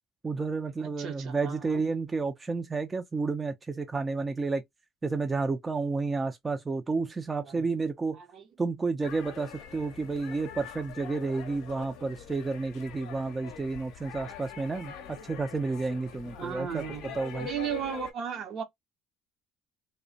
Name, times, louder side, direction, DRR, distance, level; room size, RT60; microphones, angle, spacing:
voice 1, 0.2-4.6 5.0-8.2 8.6-16.8 17.1-17.5, right 4 dB, 25° right, 0.4 m, -31 dB
voice 2, 0.8-1.8 7.4-7.7 8.1-8.5 16.4-18.6, right 8 dB, 55° right, 0.8 m, -36 dB
sound 1, 9.0-18.1, left 7 dB, 70° left, 0.5 m, -44 dB
2.4 x 2.1 x 2.5 m
hypercardioid pair, 65°, 0 cm